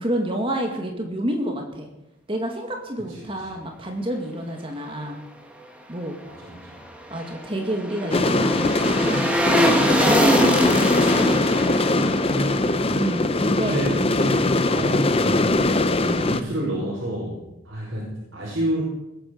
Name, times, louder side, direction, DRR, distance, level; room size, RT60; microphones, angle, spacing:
voice 1, 0.0-1.9 2.3-5.2 5.9-6.2 7.1-11.2 12.9-14.0 14.7-15.0 16.0-16.4, right 1 dB, 25° right, 2 dB, 2.1 m, -29 dB
voice 2, 3.0-3.4 6.3-6.8 12.3-12.8 13.6-17.4 17.6-18.8, right 1 dB, 60° right, -6 dB, 5.3 m, -29 dB
sound 1, 6.7-13.9 14.2-14.3, equal, 5° right, 1.6 m, -24 dB
sound 2, 8.1-16.4, left 2 dB, 30° left, 0.7 m, -21 dB
20.5 x 9.0 x 6.6 m, 0.91 s
head